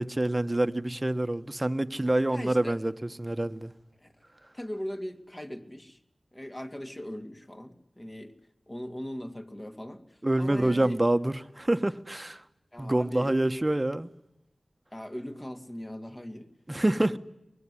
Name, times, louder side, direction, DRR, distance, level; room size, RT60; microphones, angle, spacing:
voice 1, 0.0-3.7 10.2-12.4 12.8-14.1 16.7-17.2, right 1 dB, 25° right, 1.3 m, -27 dB
voice 2, 2.3-2.8 4.0-4.1 4.5-6.0 6.3-8.3 8.7-11.0 12.7-13.4 14.9-16.5, equal, 25° left, 2.7 m, -39 dB
24.0 x 21.0 x 9.9 m
cardioid pair, 40°, 0 cm